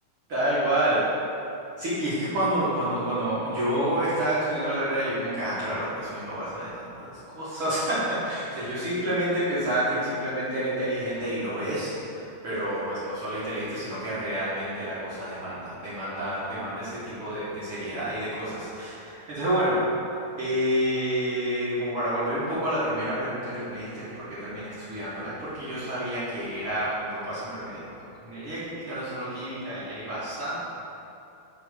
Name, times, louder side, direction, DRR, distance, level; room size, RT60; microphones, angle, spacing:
voice 1, 0.3-1.0 1.8-19.8 20.4-30.6, right 1 dB, 50° right, -11 dB, 1.7 m, -29 dB
5.6 x 4.9 x 6.4 m, 2.7 s
omnidirectional pair, 4.6 m